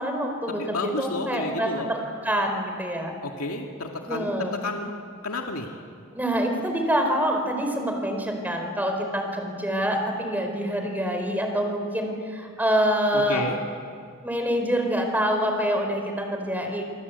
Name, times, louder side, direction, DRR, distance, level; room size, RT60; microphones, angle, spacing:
voice 1, 0.0-3.1 4.1-4.6 6.1-13.4 14.2-16.8, equal, 10° right, 3 dB, 4.5 m, -26 dB
voice 2, 0.6-1.9 3.2-5.8 13.1-13.6, left 2 dB, 90° left, 2 dB, 2.2 m, -31 dB
27.5 x 23.5 x 8.2 m, 2.2 s
head